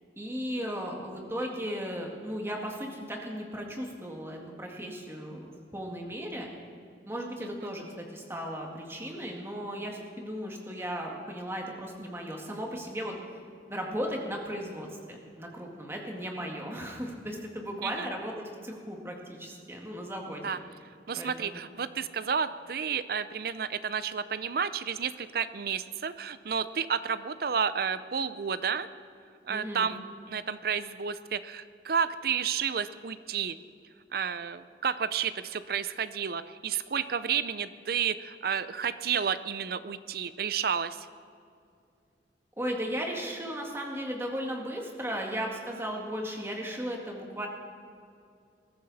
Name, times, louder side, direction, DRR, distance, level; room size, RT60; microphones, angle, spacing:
voice 1, 0.2-6.5 7.1-13.2 13.7-20.6 21.2-21.6 29.5-29.9 42.6-47.5, equal, 15° right, 0 dB, 1.9 m, -36 dB
voice 2, 21.1-28.9 29.5-30.0 30.3-33.6 34.1-41.1, right 7 dB, 55° right, 14 dB, 0.5 m, -31 dB
21.0 x 13.5 x 4.1 m, 2.4 s
head